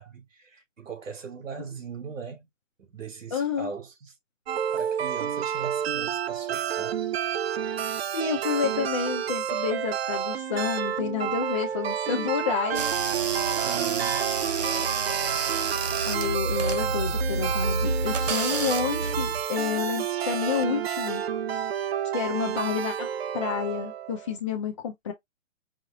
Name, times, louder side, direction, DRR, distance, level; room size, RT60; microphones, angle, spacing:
voice 1, 0.0-2.5 2.8-4.2 4.7-7.0 13.5-14.2, right 6 dB, 85° right, 2.3 m, -39 dB
voice 2, 3.3-3.7 8.1-13.1 16.0-21.2 21.5-21.7 22.1-23.1 23.3-25.1, left 7 dB, 25° left, 0.6 m, -29 dB
sound 1, 4.5-24.4, right 9 dB, 55° right, 0.5 m, -30 dB
sound 2, 12.7-19.4, right 4 dB, 35° right, 0.8 m, -29 dB
5.0 x 2.3 x 3.7 m
hypercardioid pair, 160°, 38 cm